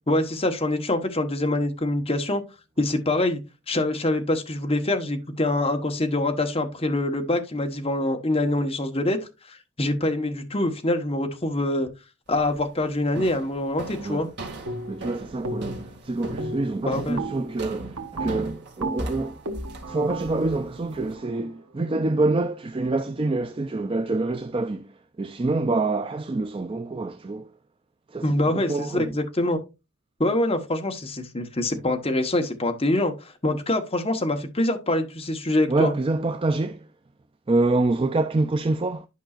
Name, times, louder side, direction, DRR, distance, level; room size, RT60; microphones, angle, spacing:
voice 1, 0.1-2.4 2.8-3.4 3.7-9.2 9.5-11.9 12.3-14.3 16.8-17.2 28.2-29.6 30.2-35.9, left 1 dB, 25° left, 1.1 m, -25 dB
sound 1, 12.3-12.7 13.2-21.1, right 2 dB, 50° right, 2.0 m, -38 dB
sound 2, 14.7-15.1 15.4-15.9 16.2-22.1, right 2 dB, 70° right, 1.4 m, -35 dB
voice 2, 14.9-19.4 19.9-24.9 25.2-27.5 28.1-29.1 35.7-36.9 37.5-39.1, right 2 dB, 25° right, 0.4 m, -26 dB
11.5 x 5.4 x 2.4 m
head